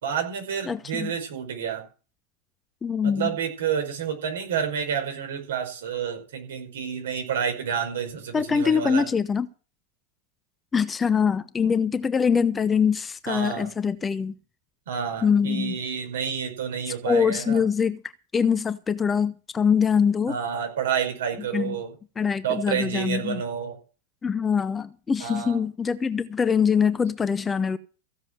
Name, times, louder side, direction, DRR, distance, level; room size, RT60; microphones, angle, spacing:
voice 1, 0.0-1.8 3.0-9.0 13.3-13.7 14.9-17.6 20.3-21.9 22.4-23.8 25.2-25.6, right 7 dB, 60° right, 5.3 m, -29 dB
voice 2, 0.7-1.1 2.8-3.3 8.3-9.5 10.7-14.3 15.2-15.7 17.1-18.0 18.3-20.4 21.5-21.8 22.2-23.4 24.2-27.8, left 6 dB, 15° left, 0.7 m, -23 dB
15.5 x 7.3 x 7.8 m
figure-of-eight pair, 90°, 0 cm